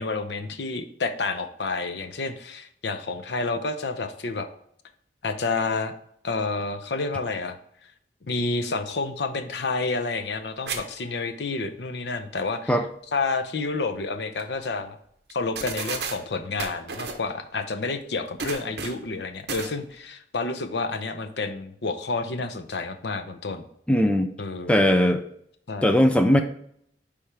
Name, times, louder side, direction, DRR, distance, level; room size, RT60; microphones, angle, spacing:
voice 1, 0.0-4.5 5.2-5.9 6.2-7.6 8.2-12.7 13.1-15.0 15.3-23.6 24.4-24.8 25.7-25.9, left 3 dB, 75° left, 7 dB, 0.7 m, -29 dB
sound 1, 10.7-10.8 11.1-11.2 14.0-14.1 14.4-14.5 15.3-15.4 15.6-16.2 16.6-17.2 18.4-19.1 19.5-19.7, right 5 dB, 70° right, 0.9 m, -32 dB
voice 2, 23.9-24.3 24.7-25.2 25.8-26.4, equal, 5° left, 7 dB, 0.4 m, -19 dB
9.9 x 3.6 x 3.3 m, 0.68 s
head